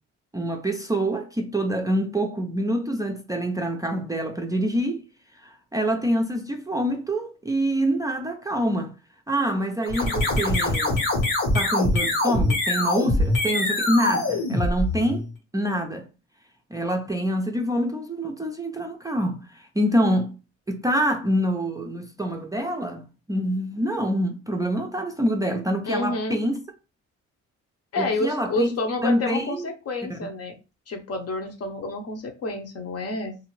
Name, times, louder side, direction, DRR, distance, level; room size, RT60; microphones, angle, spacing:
voice 1, 0.3-5.1 5.4-8.9 9.3-11.1 11.5-16.1 16.7-20.4 20.7-26.6 28.0-28.7 29.0-29.6 30.1-30.3, equal, 10° right, 0.4 m, -26 dB
sound 1, 9.8-15.3, left 2 dB, 90° left, 1.5 m, -23 dB
voice 2, 25.9-26.4 27.9-30.6 30.9-33.4, left 2 dB, 55° left, 0.8 m, -29 dB
2.6 x 2.4 x 3.1 m
cardioid pair, 90°, 30 cm